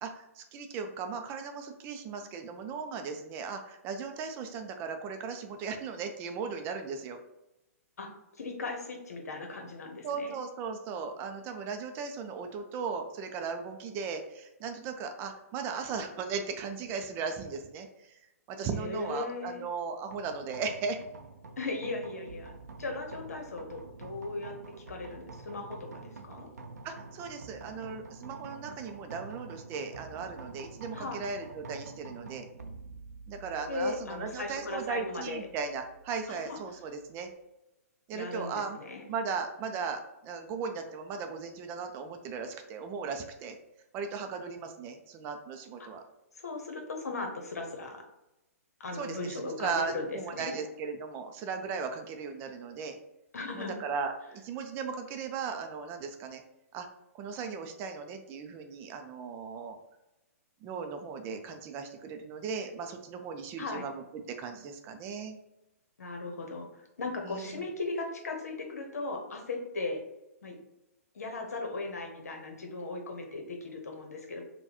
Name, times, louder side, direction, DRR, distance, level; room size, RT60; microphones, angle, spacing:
voice 1, 0.0-7.2 10.0-18.2 18.5-21.0 26.8-32.5 33.3-37.3 38.1-38.8 39.1-43.6 43.9-46.0 48.9-53.0 53.6-56.4 56.7-56.9 57.1-59.8 60.6-65.4 67.2-67.6, right 5 dB, 25° right, 5 dB, 0.5 m, -37 dB
voice 2, 8.0-10.3 18.8-19.6 21.6-22.5 22.8-24.5 24.9-26.5 30.9-31.2 33.7-35.5 36.3-36.6 38.1-39.1 45.8-46.0 46.3-48.0 48.8-50.6 53.3-53.8 63.6-63.8 66.0-70.0 70.4-70.6 71.1-74.5, left 3 dB, 75° left, 3 dB, 1.0 m, -37 dB
sound 1, 20.1-37.3, right 3 dB, 90° right, 0.5 m, -48 dB
5.3 x 2.3 x 2.9 m, 0.93 s
hypercardioid pair, 130°, 8 cm